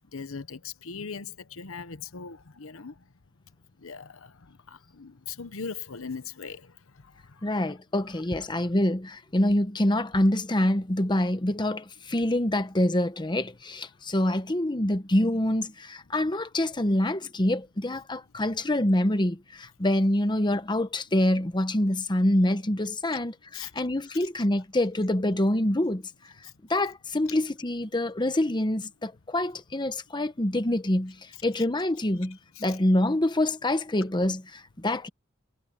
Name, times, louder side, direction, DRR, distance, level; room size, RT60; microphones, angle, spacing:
voice 1, 0.1-3.1 3.8-7.6 23.5-23.7 26.4-26.5 32.5-32.8, left 5 dB, 80° left, 1.0 m, -40 dB
voice 2, 7.4-26.1 26.7-35.1, left 1 dB, 20° left, 1.0 m, -26 dB
head